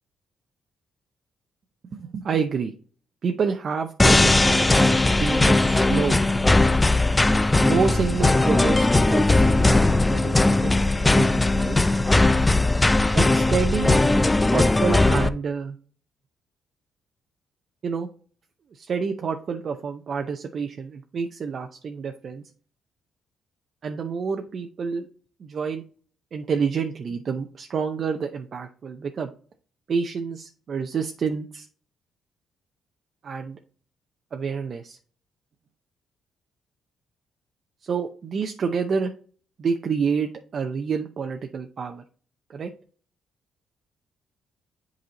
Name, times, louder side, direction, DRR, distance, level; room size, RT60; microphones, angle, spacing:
voice 1, 1.9-2.7 3.2-6.2 7.6-11.8 13.1-14.0 14.4-15.8 17.8-18.1 18.7-22.4 23.8-25.1 25.4-25.8 26.3-29.3 29.9-31.7 33.2-33.6 34.3-35.0 37.8-39.1 39.6-42.0 42.5-42.7, right 5 dB, 50° right, 5 dB, 0.6 m, -28 dB
sound 1, 4.0-15.3, left 2 dB, 15° left, 0.4 m, -19 dB
7.8 x 4.1 x 4.0 m, 0.43 s
cardioid pair, 90°, 0 cm